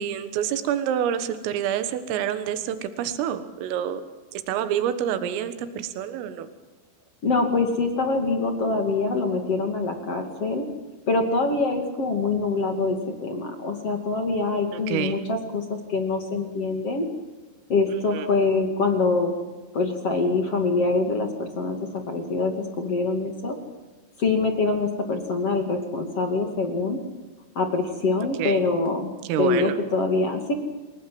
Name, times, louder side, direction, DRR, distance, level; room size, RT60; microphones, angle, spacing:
voice 1, 0.0-4.0 4.3-6.5 14.7-15.2 18.1-18.3 28.4-28.7 29.3-29.8, right 10 dB, 85° right, 10 dB, 4.1 m, -27 dB
voice 2, 7.2-10.6 11.1-17.0 17.7-19.3 19.7-23.6 24.2-27.0 27.5-29.1 29.4-30.5, left 3 dB, 40° left, 4 dB, 2.5 m, -24 dB
28.5 x 19.0 x 7.8 m, 1.2 s
omnidirectional pair, 5.8 m